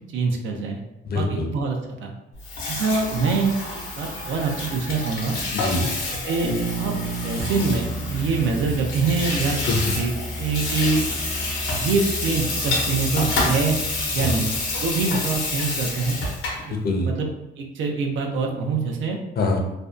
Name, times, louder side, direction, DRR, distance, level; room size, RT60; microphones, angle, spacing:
voice 1, 0.1-0.8 1.1-2.1 2.7-5.4 6.2-6.9 7.2-9.6 10.0-11.1 11.7-13.8 14.1-14.5 14.8-16.2 16.6-16.7 17.0-17.3 17.6-19.2, right 4 dB, 75° right, 2 dB, 0.5 m, -25 dB
voice 2, 1.0-1.5 5.5-5.9 9.7-10.0 14.2-14.4 16.7-17.1 19.4-19.6, left 2 dB, 50° left, 3 dB, 0.5 m, -24 dB
Water tap faucet / Sink (filling or washing), 2.3-16.7, left 2 dB, 90° left, 0.7 m, -28 dB
Bass guitar, 6.4-10.5, right 4 dB, 25° right, 0.7 m, -33 dB
sound 1, 7.4-15.1, equal, ahead, 0.3 m, -35 dB
2.6 x 2.1 x 2.4 m, 0.92 s
cardioid pair, 90°, 20 cm